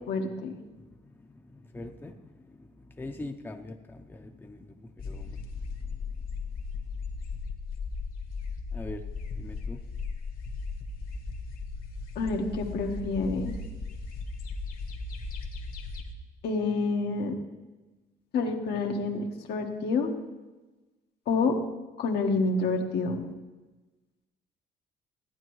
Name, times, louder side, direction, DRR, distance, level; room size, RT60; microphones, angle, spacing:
voice 1, 0.1-0.5 12.1-13.5 16.4-17.3 18.3-20.1 21.3-21.6 22.0-23.3, left 3 dB, 75° left, 2 dB, 1.4 m, -28 dB
voice 2, 0.7-5.4 8.7-9.0 9.4-9.8, left 2 dB, 10° left, 4 dB, 0.7 m, -43 dB
sound 1, 5.0-16.1, left 4 dB, 60° left, 1.5 m, -37 dB
15.0 x 9.4 x 3.1 m, 1.2 s
cardioid pair, 100°, 17 cm